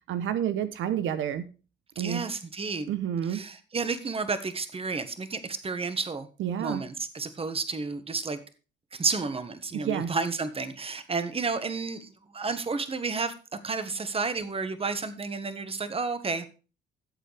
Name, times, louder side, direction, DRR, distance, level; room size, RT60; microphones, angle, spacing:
voice 1, 0.1-1.5 2.0-2.2 2.9-3.4 6.4-6.8 9.7-10.1, right 9 dB, 80° right, 12 dB, 1.0 m, -29 dB
voice 2, 1.9-2.9 3.3-6.3 6.6-8.4 8.9-13.3 13.6-16.5, right 4 dB, 30° right, 11 dB, 1.4 m, -31 dB
13.0 x 8.0 x 3.4 m, 0.34 s
cardioid pair, 90°, 20 cm